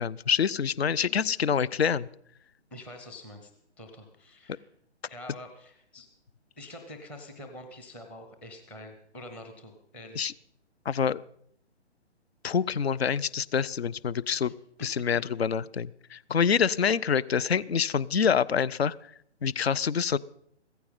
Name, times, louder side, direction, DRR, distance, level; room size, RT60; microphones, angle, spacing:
voice 1, 0.0-2.1 10.2-10.3 10.9-11.2 12.4-14.5 14.8-19.0 19.4-20.2, left 7 dB, 60° left, 22 dB, 0.6 m, -26 dB
voice 2, 2.7-3.5 3.8-4.7 5.1-6.1 6.6-10.4, left 1 dB, 5° left, 5 dB, 0.7 m, -46 dB
16.5 x 14.0 x 5.4 m, 0.68 s
figure-of-eight pair, 140°, 35 cm